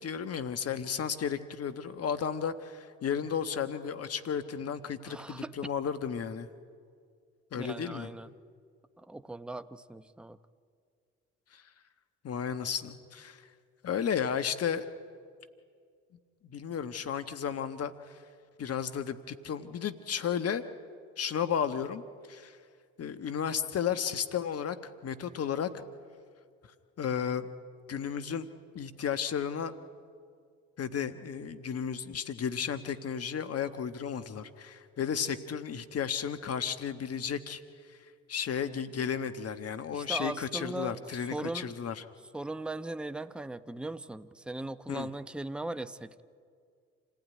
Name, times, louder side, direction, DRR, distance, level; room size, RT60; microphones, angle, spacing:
voice 1, 0.0-6.5 7.5-8.1 11.5-11.6 12.2-13.5 13.8-14.8 16.5-18.2 18.6-20.6 21.2-22.0 22.3-22.6 23.0-24.8 25.0-25.7 27.0-27.5 27.9-28.5 28.7-29.7 30.8-37.6 37.9-38.0 38.3-42.0 44.9-45.1, left 7 dB, 45° left, 10 dB, 1.3 m, -33 dB
voice 2, 5.1-5.5 7.5-8.3 9.0-10.4 39.9-41.0 41.3-41.7 42.3-46.2, right 2 dB, 5° right, 12 dB, 0.8 m, -38 dB
27.5 x 16.0 x 9.5 m, 2.2 s
hypercardioid pair, 60°, 33 cm